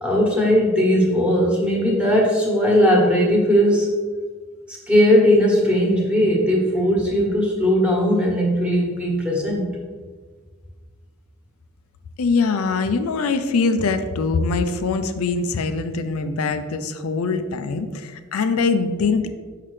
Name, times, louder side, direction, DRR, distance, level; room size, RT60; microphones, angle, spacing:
voice 1, 0.0-3.9 4.7-9.6, equal, 5° right, -3 dB, 1.3 m, -18 dB
voice 2, 12.2-19.3, left 4 dB, 90° left, 8 dB, 0.4 m, -22 dB
5.8 x 5.6 x 3.2 m, 1.5 s
head